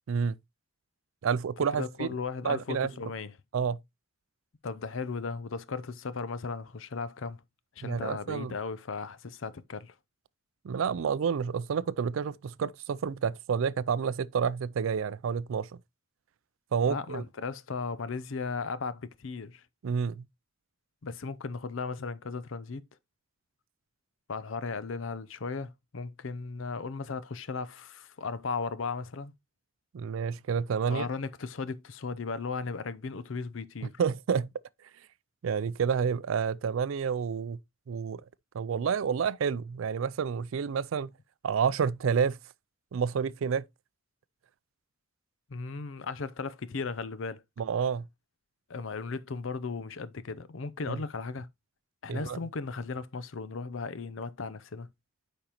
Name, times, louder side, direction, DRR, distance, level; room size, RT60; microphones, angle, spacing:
voice 1, 0.1-0.4 1.2-2.1 2.4-2.9 3.5-3.8 7.8-8.6 10.6-15.7 16.7-17.2 19.8-20.3 29.9-31.1 34.0-34.5 35.4-37.6 37.9-38.2 38.5-41.1 41.4-42.4 42.9-43.6 47.6-48.0 50.9-51.0 52.1-52.4, right 6 dB, 80° right, 0.4 m, -29 dB
voice 2, 1.6-3.3 4.6-7.4 7.8-9.9 16.9-19.6 21.0-22.8 24.3-29.3 30.9-33.9 45.5-47.4 48.7-51.5 52.0-54.9, left 4 dB, 75° left, 0.6 m, -36 dB
8.7 x 5.2 x 2.9 m
head